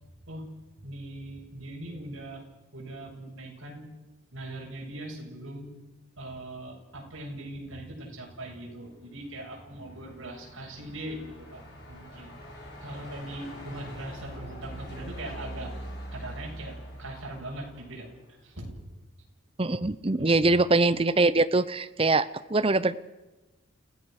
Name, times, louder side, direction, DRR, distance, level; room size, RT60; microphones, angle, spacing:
voice 1, 0.3-2.5 2.7-3.9 4.3-5.7 6.2-15.7 16.1-18.1 18.4-18.8 20.2-20.4, right 1 dB, 65° right, -2 dB, 7.9 m, -41 dB
Truck, 9.2-18.5, equal, 50° left, 5.1 m, -43 dB
voice 2, 19.6-22.9, right 2 dB, 25° right, 13 dB, 0.7 m, -23 dB
29.5 x 17.0 x 6.5 m, 1.1 s
head